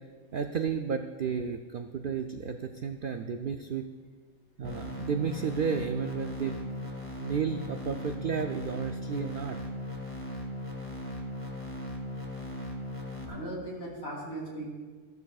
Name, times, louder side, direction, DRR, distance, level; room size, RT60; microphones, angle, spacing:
voice 1, 0.3-3.9 4.6-6.6 7.2-9.6, right 6 dB, 80° right, 6 dB, 0.4 m, -32 dB
sound 1, 4.6-13.3, left 1 dB, 10° left, 1.7 m, -38 dB
voice 2, 13.3-14.6, right 1 dB, 75° left, -4 dB, 3.8 m, -38 dB
15.0 x 12.0 x 2.4 m, 1.5 s
omnidirectional pair, 1.5 m